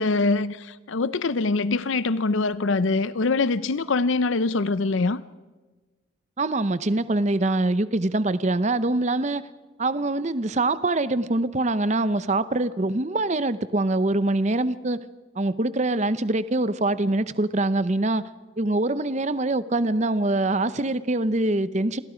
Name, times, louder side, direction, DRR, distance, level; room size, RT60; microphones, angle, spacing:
voice 1, 0.0-5.2, left 3 dB, 75° left, 0.6 m, -24 dB
voice 2, 6.4-9.4 9.8-15.0 15.4-18.2 18.6-22.0, right 2 dB, 35° right, 0.7 m, -24 dB
28.5 x 22.5 x 5.1 m
head